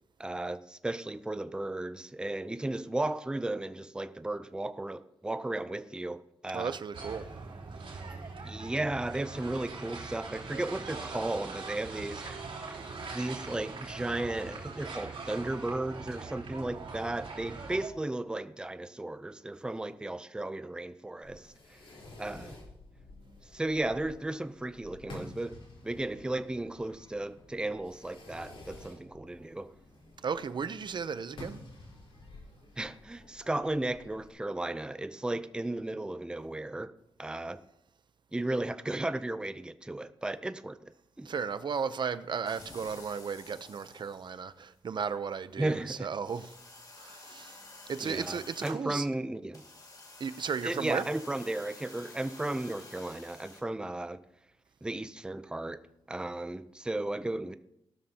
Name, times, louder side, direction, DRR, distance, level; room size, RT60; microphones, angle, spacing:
voice 1, 0.2-6.8 8.4-12.4 13.1-21.8 22.2-22.6 23.5-29.7 32.8-36.9 37.2-37.6 38.3-40.9 41.2-41.3 45.6-46.1 48.0-49.6 50.6-54.2 54.8-55.8 56.1-57.5, right 2 dB, 10° right, 0.5 m, -35 dB
voice 2, 6.5-7.3 30.2-31.6 41.2-46.5 47.0-47.6 47.9-49.1 50.2-51.1, right 6 dB, 55° right, 0.7 m, -35 dB
sound 1, 6.9-17.9, right 4 dB, 70° right, 3.3 m, -42 dB
Fireworks, 21.2-34.3, left 2 dB, 75° left, 4.0 m, -51 dB
sound 2, 42.5-44.6 45.4-45.5 45.8-45.9 46.3-48.8 49.5-53.6, left 2 dB, 40° left, 2.2 m, -50 dB
17.0 x 12.5 x 2.9 m
wide cardioid pair, 110°, 9 cm